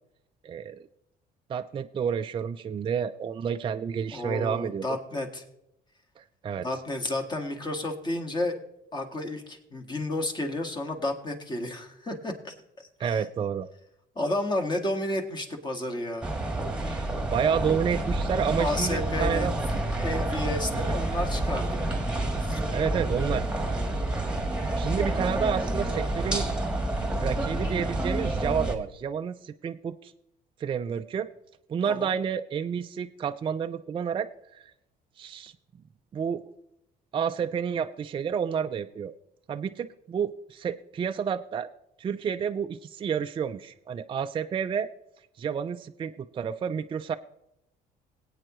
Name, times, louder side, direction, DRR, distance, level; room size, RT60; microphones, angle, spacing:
voice 1, 0.4-0.8 1.5-5.0 6.2-6.7 13.0-13.7 16.9-17.0 17.3-19.5 20.7-21.0 22.7-23.5 24.8-26.5 27.2-30.1 30.6-31.3 31.7-34.6 35.2-35.5 36.1-36.4 37.1-39.1 39.5-41.7 42.0-44.9 45.4-47.1, right 7 dB, 30° right, 7 dB, 0.4 m, -30 dB
voice 2, 4.1-5.4 6.6-8.6 8.9-13.2 14.2-16.3 18.6-19.5 20.0-21.9 22.4-22.6 31.8-32.1, left 1 dB, 25° left, 3 dB, 1.8 m, -31 dB
sound 1, 16.2-28.8, right 2 dB, 5° right, 1.5 m, -29 dB
20.5 x 8.7 x 3.1 m, 0.83 s
cardioid pair, 110°, 17 cm